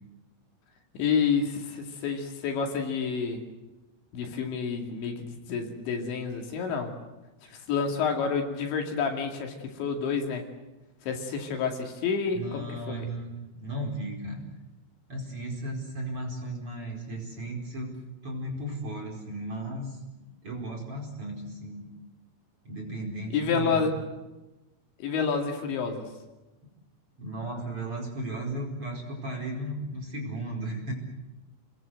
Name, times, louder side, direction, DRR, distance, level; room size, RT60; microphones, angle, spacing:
voice 1, 0.9-3.4 4.1-6.9 7.7-10.5 11.0-13.1 23.3-24.0 25.0-26.1, left 5 dB, 70° left, 3 dB, 4.6 m, -29 dB
voice 2, 12.3-13.4 13.6-14.5 15.1-17.9 18.2-20.0 20.4-21.9 22.6-24.0 27.2-30.9, right 1 dB, 30° right, 0 dB, 5.2 m, -35 dB
29.5 x 21.0 x 7.8 m, 1.1 s
omnidirectional pair, 5.6 m